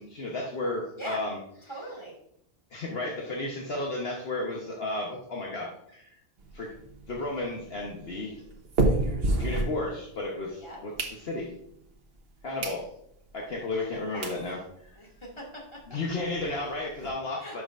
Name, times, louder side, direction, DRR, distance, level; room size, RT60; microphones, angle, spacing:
voice 1, 0.0-1.4 2.7-6.2 6.5-6.7 7.1-8.4 9.4-11.5 12.4-12.8 13.3-14.6 15.9-17.6, left 2 dB, 60° left, -2 dB, 1.3 m, -33 dB
voice 2, 1.7-2.1 10.6-10.8 14.1-14.3 15.0-15.8 17.4-17.6, right 1 dB, 25° left, -4 dB, 2.3 m, -41 dB
sound 1, 6.4-10.3 10.7-11.7 12.2-12.3 12.6-12.8 13.3-13.4 13.9-14.0 14.2-14.4 14.9-15.0 15.1-15.3 15.5-15.6 15.9-17.1, right 2 dB, 55° right, 1.3 m, -30 dB
11.0 x 6.1 x 2.5 m, 0.73 s
omnidirectional pair, 1.2 m